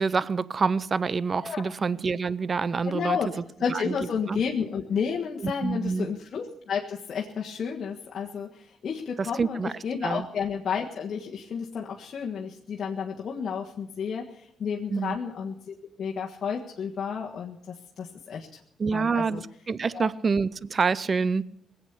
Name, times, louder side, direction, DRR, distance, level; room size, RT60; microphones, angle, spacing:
voice 1, 0.0-3.4 3.7-3.9 4.3-4.4 5.4-6.1 9.2-9.7 10.0-10.2 14.9-15.2 18.8-21.4, right 5 dB, 35° right, 0.6 m, -27 dB
voice 2, 2.8-3.3 3.6-18.5 18.9-19.4 19.9-20.1, left 6 dB, 50° left, 1.6 m, -31 dB
19.5 x 8.4 x 8.2 m
cardioid pair, 90°, 0 cm